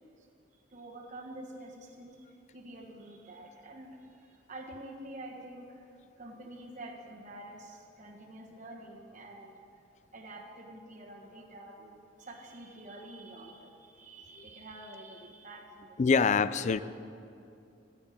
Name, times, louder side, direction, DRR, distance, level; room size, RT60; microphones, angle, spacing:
voice 1, 0.7-2.3 2.5-5.9 6.2-9.5 10.1-16.0, right 1 dB, 40° right, -1 dB, 1.4 m, -47 dB
voice 2, 16.0-16.8, left 5 dB, 40° left, 15 dB, 0.4 m, -24 dB
15.5 x 6.8 x 8.6 m, 2.6 s
head